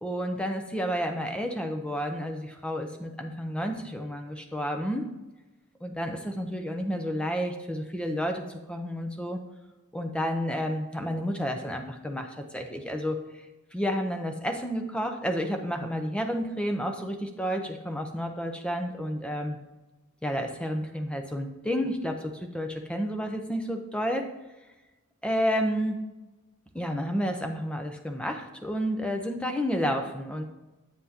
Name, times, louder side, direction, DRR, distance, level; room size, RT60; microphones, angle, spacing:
voice 1, 0.0-5.1 5.8-9.4 9.9-13.2 13.7-19.6 20.2-24.3 25.2-26.0 26.7-30.4, equal, 5° left, 4 dB, 0.6 m, -30 dB
7.8 x 7.7 x 2.8 m, 1.1 s
head